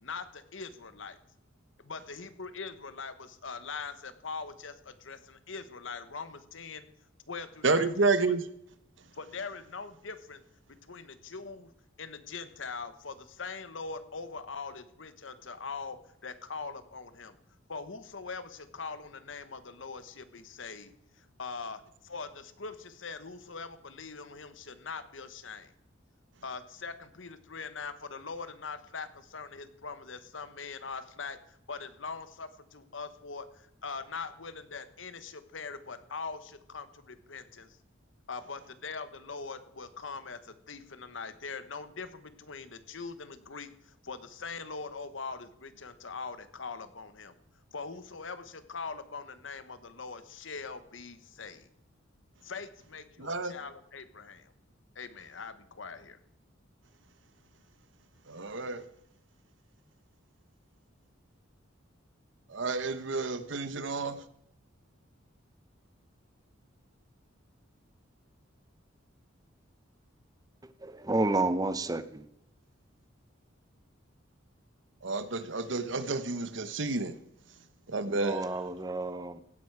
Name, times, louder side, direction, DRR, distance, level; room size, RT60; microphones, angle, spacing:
voice 1, 0.0-1.2 1.8-6.9 7.3-8.3 9.2-10.4 10.7-11.7 12.0-17.4 17.7-25.7 26.4-37.8 38.3-47.3 47.7-51.7 52.4-54.5 54.9-56.2, left 4 dB, 70° left, 1.1 m, -42 dB
voice 2, 7.6-8.5 53.2-53.5 58.3-58.8 62.5-64.2 75.0-77.1 77.9-78.4, right 3 dB, 65° right, 1.0 m, -30 dB
voice 3, 70.6-72.3 78.0-79.4, right 2 dB, 20° right, 0.7 m, -31 dB
16.5 x 9.3 x 4.7 m
head